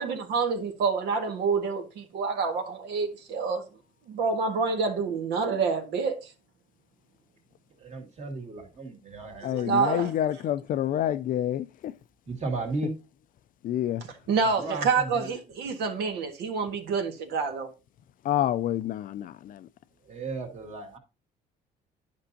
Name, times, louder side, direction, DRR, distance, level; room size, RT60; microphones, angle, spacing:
voice 1, 0.0-3.6 4.1-6.3 9.4-10.1 14.3-17.7, right 5 dB, 75° right, 1.6 m, -27 dB
voice 2, 7.8-10.0 12.3-13.0 14.4-15.4 20.0-21.0, right 3 dB, 40° right, 2.1 m, -35 dB
voice 3, 9.4-11.9 13.6-14.0 18.2-19.7, left 11 dB, 55° left, 0.4 m, -28 dB
10.5 x 5.4 x 2.7 m
cardioid pair, 110°, 17 cm